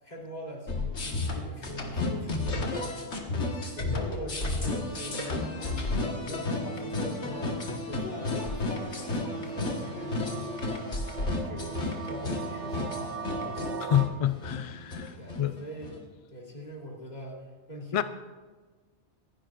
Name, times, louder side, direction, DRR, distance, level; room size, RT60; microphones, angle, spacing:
voice 1, 0.0-3.1 3.7-7.5 7.9-11.0 11.4-13.1 13.4-14.0 14.8-14.9 15.2-18.0, equal, 40° left, 3.0 m, -42 dB
sound 1, 0.7-16.0, left 2 dB, 80° left, 1.8 m, -33 dB
sound 2, 2.3-14.1, right 5 dB, 80° right, 1.2 m, -41 dB
voice 2, 13.9-15.1 15.4-15.6 17.9-18.0, left 11 dB, 60° left, 0.3 m, -27 dB
25.5 x 10.5 x 2.5 m
omnidirectional pair, 1.2 m